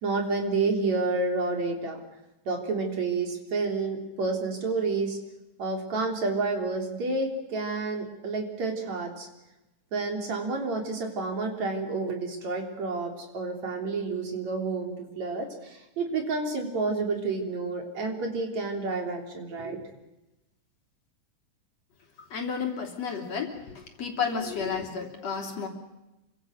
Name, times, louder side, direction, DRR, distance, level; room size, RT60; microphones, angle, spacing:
voice 1, 0.0-2.0 2.5-5.2 5.6-9.3 9.9-19.8, right 3 dB, 55° right, 3 dB, 4.7 m, -29 dB
voice 2, 22.2-25.7, left 6 dB, 50° left, 3 dB, 4.2 m, -32 dB
28.5 x 25.0 x 6.5 m, 1.0 s
omnidirectional pair, 3.7 m